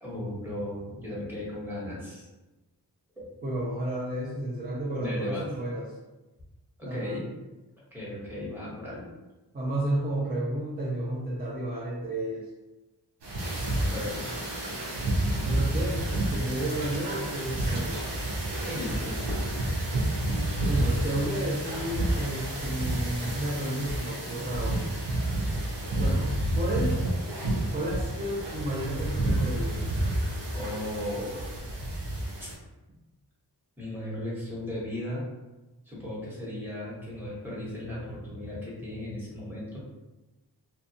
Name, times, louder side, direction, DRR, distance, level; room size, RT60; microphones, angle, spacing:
voice 1, 0.0-2.3 3.2-3.3 5.0-5.5 6.8-7.2 7.9-9.1 13.9-14.2 18.6-19.2 30.5-31.5 32.4-32.5 33.8-35.2 35.9-39.8, left 1 dB, 5° right, -7 dB, 1.0 m, -36 dB
voice 2, 3.4-5.9 6.9-7.2 9.5-12.5 15.4-18.0 20.7-24.9 26.0-27.0 27.7-29.9, right 1 dB, 25° right, -4 dB, 0.4 m, -32 dB
sound 1, 13.2-32.5, right 1 dB, 85° right, 0.7 m, -30 dB
2.7 x 2.3 x 2.6 m, 1.1 s
wide cardioid pair, 100°, 41 cm